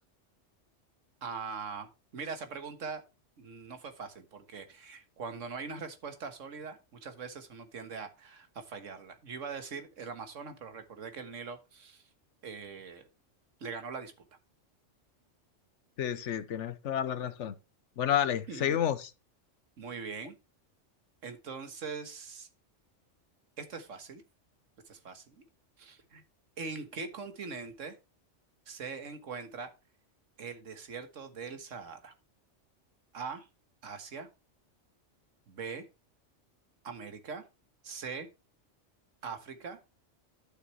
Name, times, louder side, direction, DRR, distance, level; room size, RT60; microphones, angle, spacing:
voice 1, 1.2-3.0 3.4-12.0 12.4-13.0 13.6-14.1 18.5-18.8 19.8-20.3 21.2-22.5 23.6-24.2 24.9-25.4 25.8-26.2 26.6-28.0 28.7-29.7 30.4-32.1 33.1-33.5 33.8-34.3 35.5-35.9 36.8-37.4 37.8-38.3 39.2-39.8, right 5 dB, 90° right, 1.7 m, -42 dB
voice 2, 16.0-17.5 18.0-19.1, left 9 dB, 70° left, 1.1 m, -30 dB
11.5 x 6.6 x 3.1 m
omnidirectional pair, 1.3 m